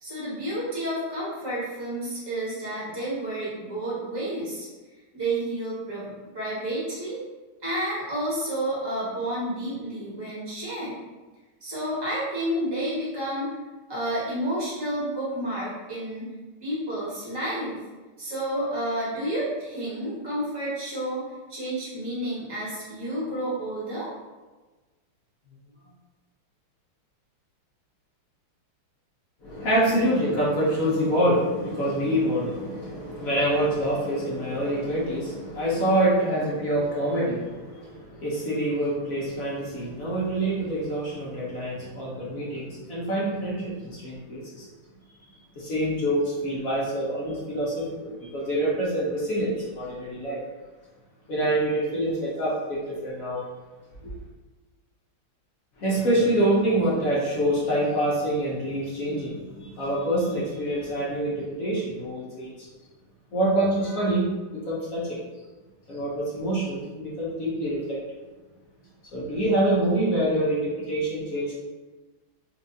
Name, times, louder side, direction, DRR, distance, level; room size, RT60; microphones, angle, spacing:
voice 1, 0.0-4.7 5.1-7.2 7.6-11.0 11.6-13.6 13.9-16.3 16.6-17.7 18.2-21.2 21.5-24.1, right 1 dB, 15° right, -8 dB, 0.9 m, -30 dB
voice 2, 29.4-44.7 45.5-50.4 51.3-53.4 54.0-54.1 55.8-62.7 63.3-65.2 65.9-68.2 69.1-71.6, right 1 dB, 60° left, -7 dB, 0.9 m, -26 dB
4.5 x 2.4 x 2.6 m, 1.2 s
omnidirectional pair, 2.4 m